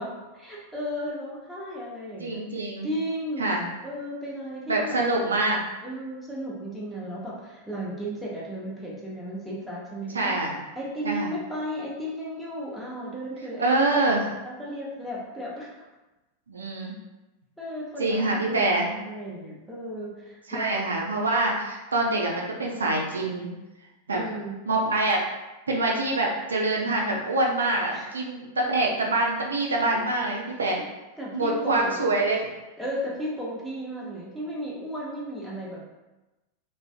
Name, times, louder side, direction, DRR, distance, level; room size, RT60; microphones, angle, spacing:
voice 1, 0.0-2.4 2.8-3.5 3.8-5.0 5.8-10.4 10.8-13.9 14.4-15.7 17.6-20.8 22.6-22.7 24.1-24.6 27.9-28.1 31.2-32.0 32.8-35.8, equal, ahead, -6 dB, 0.7 m, -34 dB
voice 2, 2.2-2.9 3.4-3.6 4.7-5.6 10.1-10.6 11.0-11.3 13.6-14.3 16.5-16.9 18.0-18.9 20.5-23.5 24.1-24.2 24.7-25.2 25.7-30.8 31.3-32.5, right 2 dB, 75° right, -1 dB, 0.3 m, -25 dB
2.4 x 2.1 x 2.4 m, 1.1 s
figure-of-eight pair, 90°, 0 cm